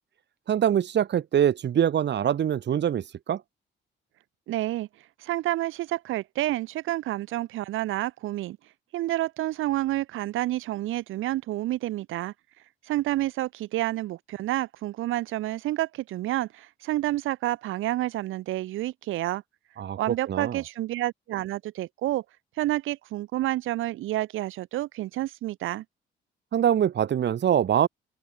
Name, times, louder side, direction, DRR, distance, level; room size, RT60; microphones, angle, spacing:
voice 1, 0.5-3.4 19.8-20.0 20.2-20.6 26.5-27.9, right 9 dB, 60° right, 3.7 m, -24 dB
voice 2, 4.5-4.9 5.2-8.6 8.9-12.3 12.9-19.4 20.0-22.2 22.6-25.8, right 15 dB, 90° right, 4.8 m, -29 dB
cardioid pair, 90°, 20 cm